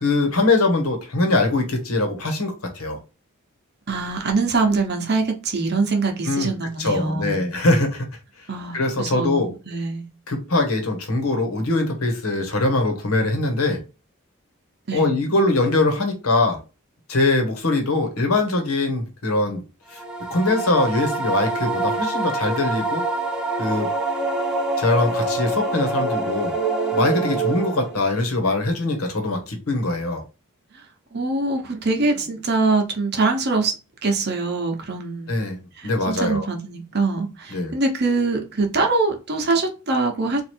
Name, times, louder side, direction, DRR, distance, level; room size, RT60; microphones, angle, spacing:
voice 1, 0.0-3.0 6.2-6.5 6.8-8.1 8.7-9.5 10.3-13.8 14.9-16.6 17.1-19.6 19.9-20.0 20.3-23.0 23.6-23.9 24.8-26.5 26.9-30.2 35.3-35.6 35.8-36.5 37.5-37.7, left 2 dB, 80° left, 1.2 m, -22 dB
voice 2, 3.9-7.4 8.5-10.1 14.9-15.1 31.1-33.7 34.0-35.3 35.8-40.4, right 3 dB, 50° right, 0.9 m, -23 dB
sound 1, 19.9-28.1, right 3 dB, 5° right, 0.5 m, -25 dB
3.2 x 2.6 x 4.3 m
head